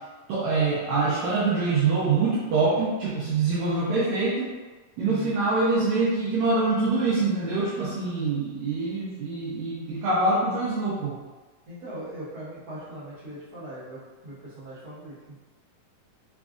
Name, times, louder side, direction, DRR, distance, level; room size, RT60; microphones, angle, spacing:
voice 1, 0.3-4.5 5.0-11.2, right 3 dB, 75° right, -8 dB, 1.7 m, -25 dB
voice 2, 5.0-5.4 11.7-15.3, right 1 dB, 55° right, -11 dB, 1.0 m, -40 dB
5.0 x 2.3 x 2.4 m, 1.3 s
omnidirectional pair, 3.7 m